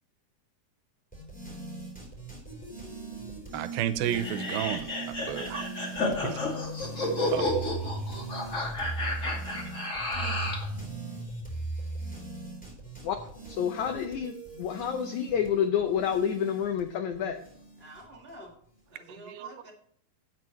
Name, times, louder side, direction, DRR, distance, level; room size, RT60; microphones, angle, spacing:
sound 1, 1.1-18.3, right 2 dB, ahead, 3.1 m, -39 dB
voice 1, 3.5-5.7 6.2-6.4 7.3-7.5 19.2-19.5, right 11 dB, 80° right, 12 dB, 2.5 m, -32 dB
sound 2, 4.1-10.7, left 1 dB, 25° left, 1.8 m, -31 dB
voice 2, 6.9-7.5 17.8-18.5 18.9-19.7, right 1 dB, 25° right, -2 dB, 1.3 m, -48 dB
voice 3, 13.0-17.4, left 8 dB, 80° left, 7 dB, 1.7 m, -29 dB
16.5 x 6.7 x 3.1 m, 0.63 s
omnidirectional pair, 4.3 m